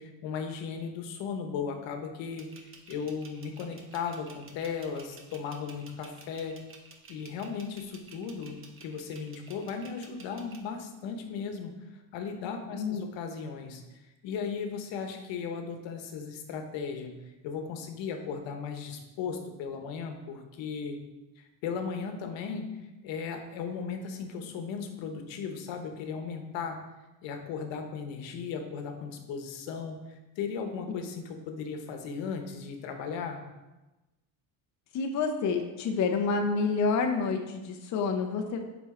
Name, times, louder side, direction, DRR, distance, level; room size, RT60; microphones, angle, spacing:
voice 1, 0.0-6.6 7.1-8.5 8.8-11.7 12.1-17.2 17.4-21.0 21.4-22.7 23.0-26.8 27.2-33.4, left 6 dB, 80° left, 5 dB, 1.0 m, -36 dB
Timer Ticking, 2.2-10.6, right 4 dB, 30° right, 0.7 m, -52 dB
voice 2, 12.7-13.0 34.9-38.6, left 4 dB, 40° left, 4 dB, 0.6 m, -28 dB
7.3 x 4.4 x 3.7 m, 1.1 s
cardioid pair, 155°, 44 cm